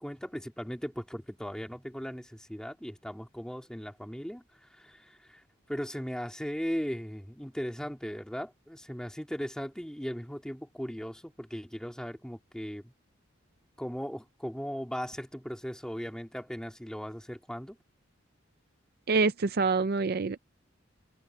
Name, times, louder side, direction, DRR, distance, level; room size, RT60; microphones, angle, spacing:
voice 1, 0.0-12.9 13.8-17.8, equal, 5° left, 2.7 m, -38 dB
voice 2, 19.1-20.4, right 4 dB, 50° right, 0.5 m, -26 dB
head